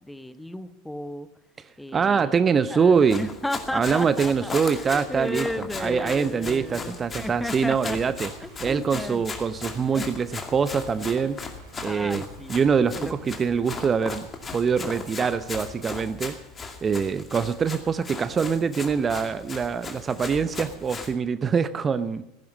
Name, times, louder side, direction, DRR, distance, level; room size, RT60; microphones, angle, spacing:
voice 1, 0.1-1.3 1.8-2.3 2.7-8.1 8.4-9.3 9.9-10.1 11.8-12.6 13.0-13.5, left 1 dB, 5° left, 0.9 m, -34 dB
voice 2, 1.9-3.3 3.7-8.3 8.6-11.4 11.8-12.2 12.5-14.3 14.5-16.4 16.8-22.2, right 6 dB, 25° right, 0.6 m, -24 dB
Run, 2.9-21.1, left 4 dB, 25° left, 2.4 m, -38 dB
sound 1, 6.6-15.9, right 2 dB, 65° right, 7.4 m, -48 dB
16.0 x 11.0 x 7.2 m
hypercardioid pair, 85°, 0 cm